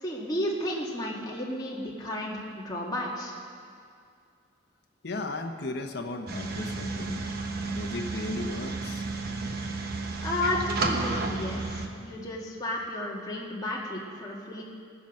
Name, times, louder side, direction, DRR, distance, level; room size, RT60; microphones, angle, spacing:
voice 1, 0.0-3.4 10.2-14.6, left 1 dB, 20° left, -3 dB, 1.7 m, -33 dB
voice 2, 5.0-9.1, left 2 dB, 55° left, 3 dB, 0.9 m, -36 dB
sound 1, 6.3-11.9, right 3 dB, 50° right, 1.1 m, -32 dB
17.5 x 9.7 x 6.4 m, 2.4 s
head